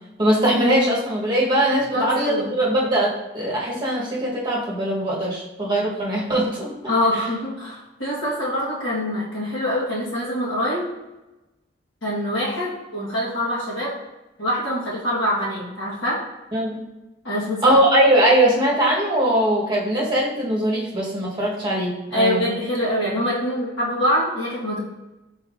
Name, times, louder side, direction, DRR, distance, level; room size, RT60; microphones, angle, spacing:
voice 1, 0.2-6.7 16.5-16.8 17.6-22.4, right 1 dB, 20° right, -5 dB, 1.1 m, -21 dB
voice 2, 1.9-2.5 6.9-10.8 12.0-13.9 14.4-16.2 17.2-17.7 22.1-24.8, left 1 dB, 80° left, -5 dB, 1.4 m, -24 dB
5.4 x 4.0 x 2.5 m, 1.0 s
head